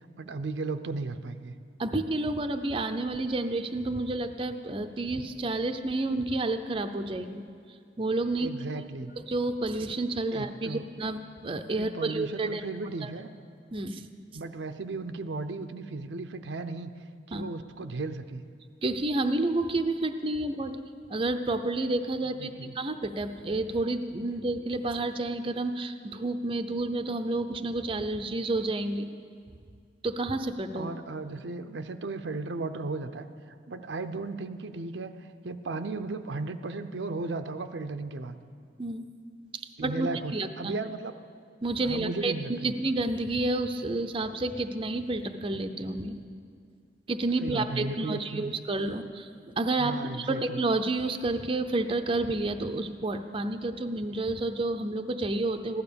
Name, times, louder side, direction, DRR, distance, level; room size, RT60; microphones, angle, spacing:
voice 1, 0.2-1.5 8.4-9.1 10.3-10.8 11.8-13.3 14.3-16.9 17.3-18.4 22.4-22.7 30.7-33.3 33.7-38.4 39.8-41.1 41.8-42.7 47.4-48.5 49.8-50.6, right 3 dB, 75° right, 9 dB, 0.6 m, -35 dB
voice 2, 1.8-7.5 8.0-8.5 9.2-12.6 13.0-13.1 13.7-14.1 17.3-17.4 18.8-20.8 21.1-29.1 30.0-30.9 38.8-39.1 39.5-40.7 41.6-46.1 47.1-49.3 49.6-55.8, right 2 dB, 30° right, 6 dB, 0.6 m, -30 dB
15.5 x 12.0 x 6.9 m, 2.2 s
head